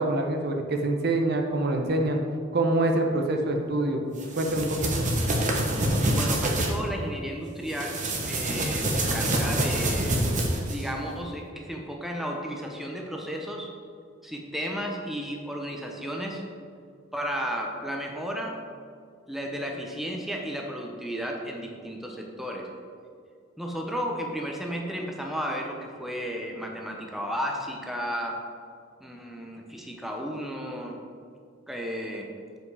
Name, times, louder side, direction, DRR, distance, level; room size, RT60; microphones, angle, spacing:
voice 1, 0.0-2.2 2.5-4.0 4.3-5.1, right 2 dB, 55° right, 3 dB, 0.8 m, -25 dB
sound 1, 4.2-6.7 7.7-10.9, right 1 dB, 40° right, 1.1 m, -26 dB
voice 2, 6.1-10.2 10.7-13.7 14.2-16.4 17.1-18.6 19.3-22.7 23.6-28.4 29.0-31.0 31.7-32.3, equal, ahead, 0 dB, 0.7 m, -33 dB
7.8 x 5.1 x 4.8 m, 2.2 s
head